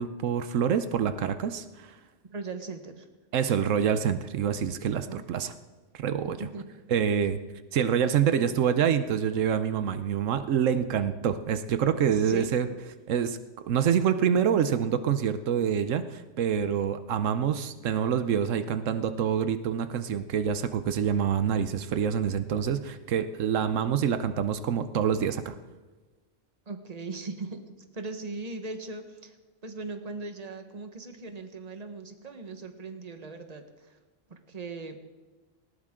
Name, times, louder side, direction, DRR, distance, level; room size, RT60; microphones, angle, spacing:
voice 1, 0.0-1.9 3.3-5.5 5.9-6.4 6.9-7.4 7.7-12.7 13.1-13.4 13.7-25.5, right 8 dB, 85° right, 11 dB, 1.1 m, -26 dB
voice 2, 2.3-3.1 4.9-5.2 6.3-6.6 12.1-12.5 26.7-27.6 27.9-29.4 29.6-34.0 34.3-35.0, right 3 dB, 30° right, 6 dB, 1.3 m, -39 dB
19.0 x 18.0 x 3.7 m, 1.3 s
omnidirectional pair, 1.3 m